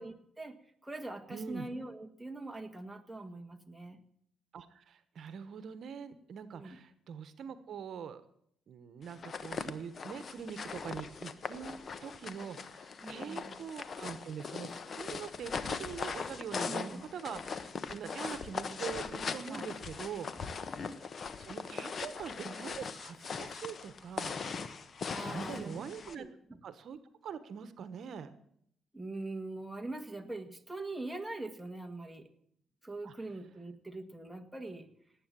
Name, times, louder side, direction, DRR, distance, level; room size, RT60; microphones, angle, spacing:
voice 1, 0.0-4.0 6.5-6.8 13.0-13.6 16.7-17.0 18.3-18.4 19.5-19.7 20.4-20.5 25.1-26.3 28.9-32.3 32.8-34.9, right 2 dB, 5° right, 5 dB, 1.8 m, -43 dB
voice 2, 1.3-1.7 4.5-8.2 8.7-11.7 12.0-20.3 21.4-24.7 25.2-26.3 26.6-28.3 33.0-33.1, right 7 dB, 60° right, 12 dB, 1.2 m, -44 dB
sound 1, 9.1-26.2, left 5 dB, 45° left, 1.2 m, -40 dB
18.5 x 9.1 x 7.6 m, 0.69 s
cardioid pair, 90°, 0 cm